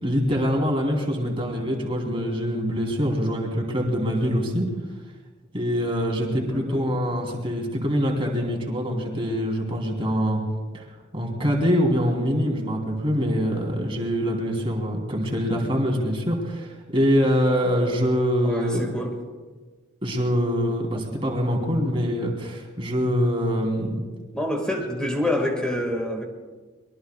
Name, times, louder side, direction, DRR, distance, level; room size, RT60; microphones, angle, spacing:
voice 1, 0.0-4.7 5.5-10.4 10.7-10.8 11.1-18.9 20.0-23.9, equal, 25° right, 0 dB, 3.3 m, -24 dB
voice 2, 6.5-6.9 18.4-19.1 21.3-21.5 24.3-26.2, left 1 dB, 5° left, 2 dB, 1.9 m, -27 dB
23.5 x 22.5 x 2.4 m, 1.4 s
head